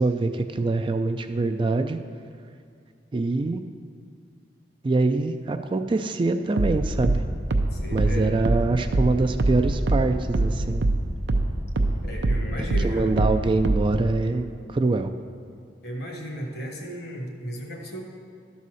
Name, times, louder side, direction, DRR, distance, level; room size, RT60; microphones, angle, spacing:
voice 1, 0.0-2.0 3.1-3.6 4.8-7.2 7.9-10.8 12.8-15.1, right 3 dB, 30° right, 8 dB, 0.3 m, -24 dB
sound 1, 6.6-11.5 11.8-14.0, right 2 dB, 75° right, 0.6 m, -23 dB
voice 2, 7.7-8.3 12.0-13.1 15.8-18.0, equal, 65° left, 1 dB, 1.5 m, -35 dB
12.0 x 4.2 x 6.3 m, 2.3 s
head